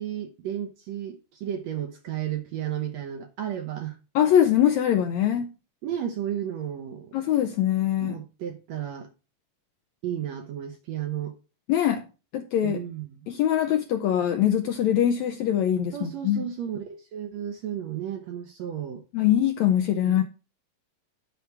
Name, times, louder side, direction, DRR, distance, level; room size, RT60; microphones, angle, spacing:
voice 1, 0.0-4.0 5.8-7.1 8.0-9.1 10.0-11.4 12.6-13.3 15.9-19.0 20.0-20.2, right 10 dB, 70° right, 1.7 m, -33 dB
voice 2, 4.1-5.5 7.1-8.1 11.7-12.0 12.3-12.8 13.3-16.5 19.1-20.2, left 10 dB, 80° left, 1.6 m, -23 dB
11.0 x 4.8 x 4.6 m
omnidirectional pair, 3.9 m